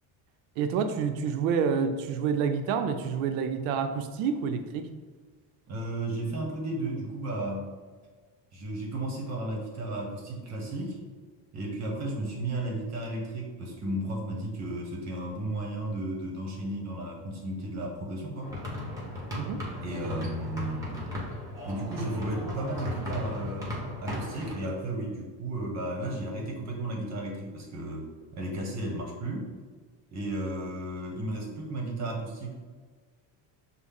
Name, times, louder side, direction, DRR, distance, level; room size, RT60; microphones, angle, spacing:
voice 1, 0.6-4.9 19.4-19.8, right 6 dB, 90° right, 8 dB, 0.5 m, -28 dB
voice 2, 5.7-7.7 8.5-11.0 11.5-18.5 19.8-21.1 21.6-29.5 30.1-32.5, right 1 dB, 35° right, 0 dB, 1.0 m, -34 dB
sound 1, 18.4-24.5, left 1 dB, 5° right, 1.0 m, -36 dB
6.1 x 2.1 x 3.6 m, 1.5 s
cardioid pair, 135°, 46 cm